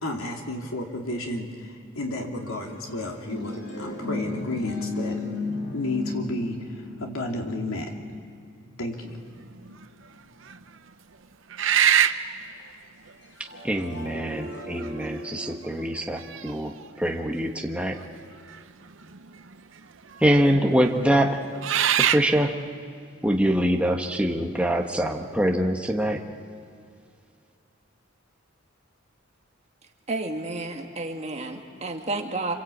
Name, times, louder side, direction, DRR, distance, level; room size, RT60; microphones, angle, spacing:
voice 1, 0.0-5.2 5.7-6.6 7.0-7.9 8.8-9.1, left 1 dB, 80° left, 2 dB, 3.1 m, -32 dB
sound 1, 2.4-10.0 13.2-17.3, left 3 dB, 60° left, 4.7 m, -36 dB
sound 2, 9.4-9.8 10.5-10.6 11.5-12.3 13.5-13.6 14.6-15.1 15.5-15.6 16.2-16.9 18.5-18.6 18.9-19.5 20.2-20.3 21.3-22.3, right 9 dB, 65° right, 0.8 m, -23 dB
voice 2, 13.6-16.7 17.0-18.0 20.2-21.4 22.0-22.5 23.2-26.2, equal, 5° right, 2 dB, 1.3 m, -24 dB
voice 3, 30.1-32.5, right 2 dB, 30° right, 3 dB, 1.8 m, -31 dB
26.5 x 26.0 x 8.6 m, 2.3 s
head